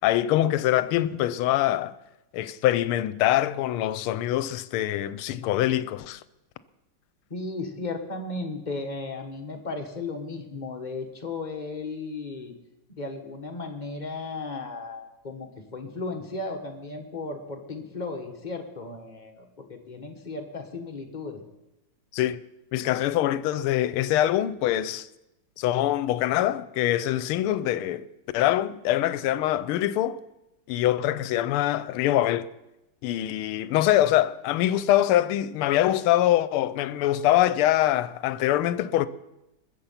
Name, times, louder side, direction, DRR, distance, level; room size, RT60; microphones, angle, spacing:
voice 1, 0.0-1.9 2.3-6.2 22.1-22.4 22.7-25.1 25.6-28.1 28.3-30.2 30.7-32.5 33.0-39.1, left 13 dB, 85° left, 1.5 m, -24 dB
voice 2, 7.3-12.5 13.0-21.4, left 3 dB, 25° left, 1.2 m, -35 dB
21.0 x 7.5 x 5.7 m
omnidirectional pair, 2.4 m